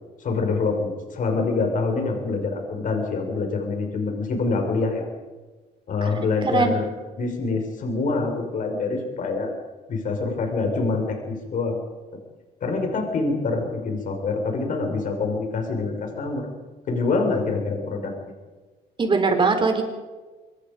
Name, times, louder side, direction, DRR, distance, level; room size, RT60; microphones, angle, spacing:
voice 1, 0.2-5.0 5.9-6.9 7.2-9.5 9.9-11.8 12.6-16.5 16.9-18.1, left 3 dB, 50° left, 3 dB, 5.5 m, -25 dB
voice 2, 6.4-6.8 19.0-19.8, right 4 dB, 30° right, 5 dB, 4.1 m, -20 dB
25.0 x 21.5 x 5.2 m, 1.3 s
cardioid pair, 110°, 17 cm